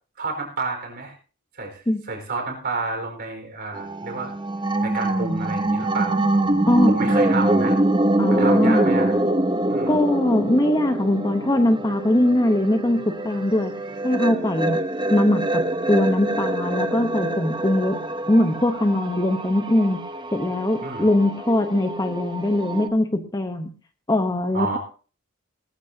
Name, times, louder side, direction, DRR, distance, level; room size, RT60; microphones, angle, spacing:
voice 1, 0.2-1.1 1.5-4.3 4.8-6.2 6.4-7.8 8.3-9.2 9.7-10.0 20.8-21.1 24.5-24.8, right 3 dB, 50° right, 3 dB, 4.3 m, -30 dB
sound 1, 3.7-22.9, right 1 dB, 20° right, 0.8 m, -24 dB
voice 2, 8.2-8.9 9.9-13.7 14.0-18.0 18.3-20.0 20.3-23.7 24.1-24.8, left 1 dB, 20° left, 7 dB, 0.9 m, -21 dB
19.5 x 13.5 x 2.8 m, 0.37 s
head